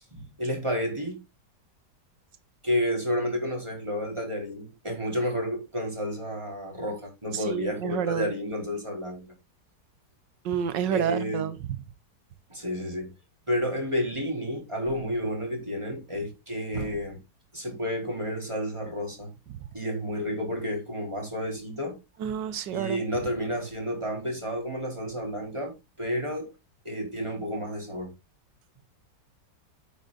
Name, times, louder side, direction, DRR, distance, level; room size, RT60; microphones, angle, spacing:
voice 1, 0.1-1.2 2.6-9.3 10.9-11.5 12.5-13.1 13.5-17.2 17.5-19.3 19.7-22.0 22.7-26.5 26.8-28.1, equal, 15° right, 4.4 m, -31 dB
voice 2, 7.3-8.3 10.4-11.6 22.2-23.0, right 8 dB, 85° right, 1.6 m, -29 dB
9.0 x 8.9 x 4.0 m
omnidirectional pair, 1.9 m